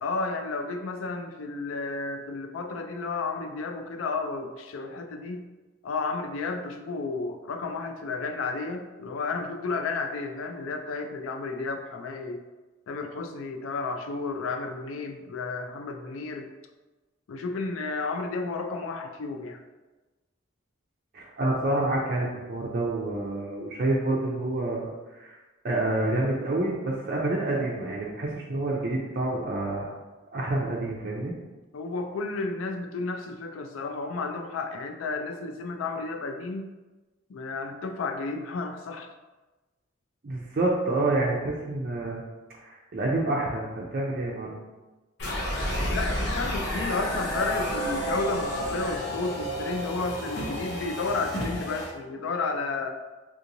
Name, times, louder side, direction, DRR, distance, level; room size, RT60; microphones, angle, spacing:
voice 1, 0.0-5.5 5.8-12.4 12.9-16.5 17.3-19.6 31.7-36.7 37.3-39.1 45.9-52.9, left 3 dB, 85° left, 5 dB, 0.4 m, -32 dB
voice 2, 21.1-24.9 25.2-25.4 25.6-29.9 30.3-31.3 40.2-42.2 42.6-44.6, right 2 dB, 50° right, -4 dB, 0.5 m, -28 dB
sound 1, 45.2-51.9, equal, 55° left, 0.9 m, -30 dB
3.6 x 2.9 x 2.6 m, 1.2 s
head